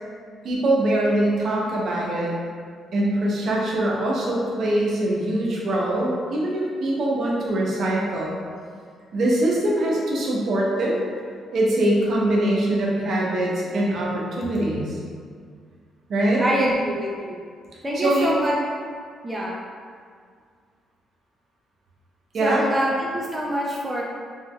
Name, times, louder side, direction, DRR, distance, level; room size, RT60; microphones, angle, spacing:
voice 1, 0.4-2.3 2.9-8.4 9.1-11.0 11.5-15.0 16.1-16.4 17.9-18.3 22.3-22.6, right 1 dB, 60° right, -3 dB, 0.7 m, -23 dB
voice 2, 16.4-17.4 17.8-18.6 19.2-19.6 22.4-24.0, equal, 15° right, -4 dB, 0.4 m, -25 dB
3.2 x 3.0 x 2.2 m, 2.1 s
cardioid pair, 90°, 0 cm